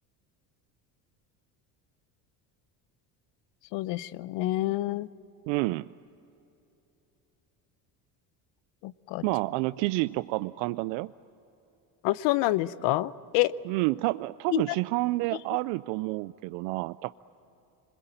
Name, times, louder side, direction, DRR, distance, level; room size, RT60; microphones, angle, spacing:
voice 1, 3.7-5.1 8.8-9.3 12.0-13.5 14.5-14.6, left 17 dB, 75° left, 17 dB, 0.9 m, -27 dB
voice 2, 5.5-5.9 9.2-11.1 13.7-17.1, right 21 dB, 85° right, 15 dB, 0.6 m, -29 dB
27.0 x 22.0 x 9.1 m, 2.9 s
supercardioid pair, 90°, 44 cm